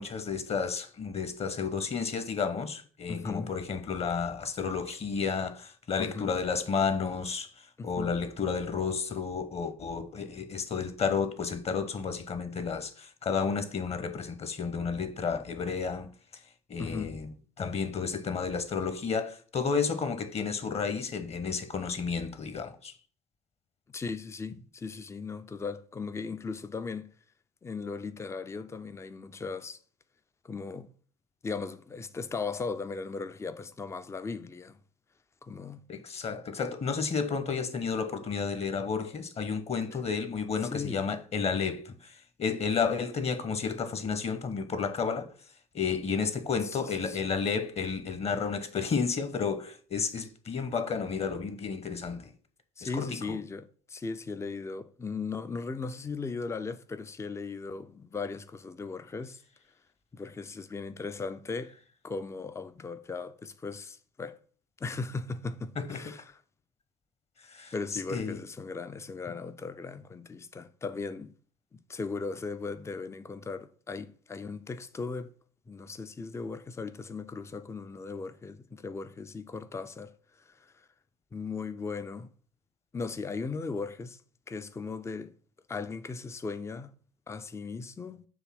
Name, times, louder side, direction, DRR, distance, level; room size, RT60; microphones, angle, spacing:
voice 1, 0.0-7.5 7.8-16.1 16.7-17.3 17.6-22.9 35.9-45.3 45.7-52.3 52.8-53.4 65.8-66.0 67.5-67.7 68.1-68.4, left 5 dB, 35° left, 1.1 m, -31 dB
voice 2, 3.1-3.5 6.0-6.4 7.8-8.1 16.8-17.1 23.9-27.1 27.6-29.8 30.4-30.9 31.4-34.8 35.4-35.8 40.7-41.0 46.7-46.8 47.1-47.2 52.8-59.4 60.1-61.7 62.0-64.4 64.8-66.4 67.7-71.3 71.9-75.3 75.7-80.9 81.3-82.3 82.9-84.2 84.5-85.3 85.7-86.9 87.3-88.3, left 4 dB, 15° left, 0.6 m, -37 dB
7.2 x 3.3 x 5.8 m
figure-of-eight pair, 60°, 19 cm